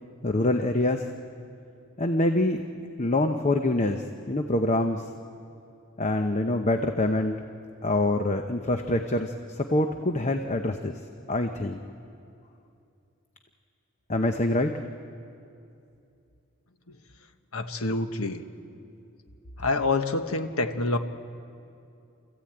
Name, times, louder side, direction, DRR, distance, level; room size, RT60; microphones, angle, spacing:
voice 1, 0.2-1.1 2.0-2.6 3.0-5.0 6.0-7.4 7.8-10.9 11.3-11.8 14.1-14.7, left 1 dB, 35° left, 6 dB, 0.8 m, -25 dB
voice 2, 17.5-18.4 19.6-21.0, left 3 dB, 90° left, 7 dB, 1.2 m, -27 dB
28.0 x 15.0 x 8.8 m, 2.6 s
head